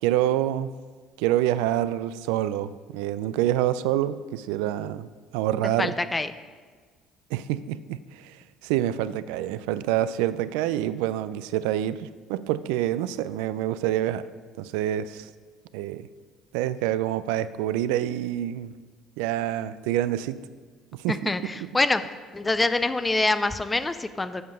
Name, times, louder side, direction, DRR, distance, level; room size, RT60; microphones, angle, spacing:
voice 1, 0.0-0.7 1.2-5.1 5.3-6.0 7.3-8.4 8.6-14.2 14.6-15.3 15.7-16.1 16.5-18.7 19.2-20.4 20.9-21.3, right 12 dB, 90° right, 15 dB, 0.3 m, -27 dB
voice 2, 5.8-6.3 21.1-22.0 22.3-24.4, left 2 dB, 15° left, 11 dB, 0.4 m, -25 dB
7.8 x 5.4 x 6.4 m, 1.5 s
supercardioid pair, 105°, 0 cm